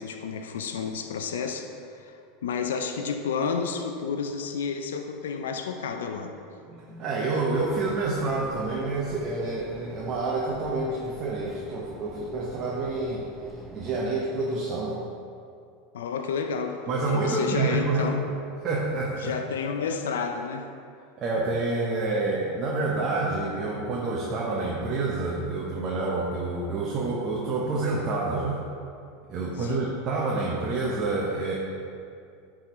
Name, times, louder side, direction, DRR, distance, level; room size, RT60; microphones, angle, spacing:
voice 1, 0.0-6.4 15.9-16.8 17.1-18.2 19.2-20.7 29.6-29.9, left 6 dB, 90° left, 5 dB, 0.4 m, -31 dB
voice 2, 6.6-13.2 13.7-15.0 16.9-18.2 18.6-19.3 21.2-28.6 29.3-31.5, right 3 dB, 40° right, -3 dB, 0.8 m, -28 dB
sound 1, 7.5-14.2, right 2 dB, 10° right, 0.6 m, -46 dB
9.3 x 3.7 x 3.0 m, 2.4 s
hypercardioid pair, 110°, 0 cm